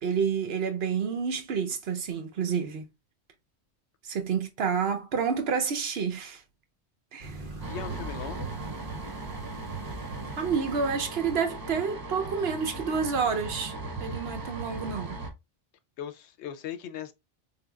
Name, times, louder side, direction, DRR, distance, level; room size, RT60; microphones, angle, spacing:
voice 1, 0.0-2.8 4.0-6.4 7.1-7.4 10.4-13.7 14.0-15.2, right 6 dB, 65° right, 0.9 m, -29 dB
sound 1, 7.2-11.8, right 3 dB, 50° right, 1.2 m, -44 dB
voice 2, 7.4-8.5 16.0-17.1, left 9 dB, 85° left, 0.9 m, -39 dB
sound 2, 7.6-15.3, right 3 dB, 30° right, 0.5 m, -38 dB
3.9 x 3.4 x 2.2 m
omnidirectional pair, 1.1 m